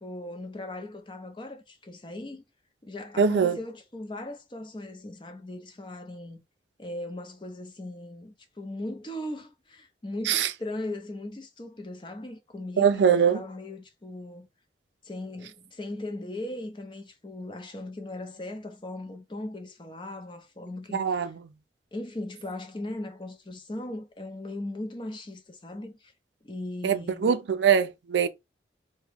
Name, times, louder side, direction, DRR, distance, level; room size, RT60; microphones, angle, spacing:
voice 1, 0.0-2.4 2.8-6.4 6.8-14.5 15.0-21.3 21.9-26.1 26.4-27.3, left 1 dB, 25° left, 0.6 m, -38 dB
voice 2, 3.2-3.6 10.3-10.5 12.8-13.4 20.9-21.4 26.8-28.3, right 7 dB, 85° right, 0.4 m, -22 dB
2.9 x 2.2 x 3.3 m
head